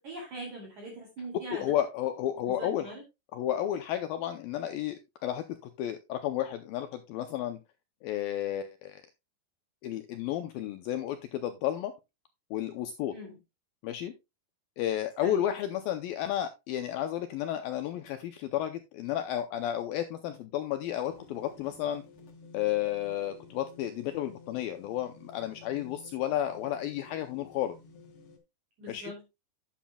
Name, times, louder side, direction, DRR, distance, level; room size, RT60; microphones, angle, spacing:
voice 1, 0.0-1.6 2.5-3.0 13.1-13.3 15.2-15.4 28.8-29.2, right 1 dB, 50° right, -1 dB, 3.7 m, -42 dB
voice 2, 1.5-2.9 3.3-7.6 8.0-9.0 9.8-11.9 12.5-13.2 13.8-14.1 14.8-22.0 22.5-27.8 28.9-29.1, left 11 dB, 80° left, 8 dB, 2.1 m, -32 dB
sound 1, 21.0-28.4, left 4 dB, 60° left, 1.4 m, -53 dB
11.5 x 9.2 x 2.3 m, 0.24 s
omnidirectional pair, 4.9 m